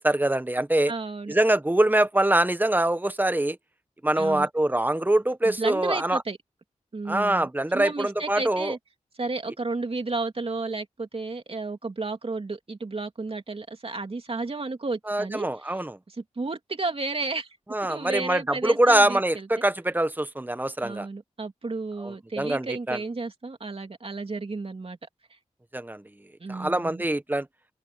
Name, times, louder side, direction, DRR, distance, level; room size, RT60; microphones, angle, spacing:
voice 1, 0.0-0.9 1.3-3.6 4.0-6.2 7.1-8.7 15.1-16.0 17.7-21.1 22.0-23.0 25.7-26.0 26.5-27.5, right 1 dB, 15° right, 1.2 m, -24 dB
voice 2, 0.9-1.3 4.2-4.5 5.4-6.4 6.9-8.8 9.2-15.8 16.1-17.5 17.9-19.5 20.8-25.1 26.4-27.0, right 3 dB, 50° right, 2.9 m, -33 dB
wide cardioid pair, 70°, 12 cm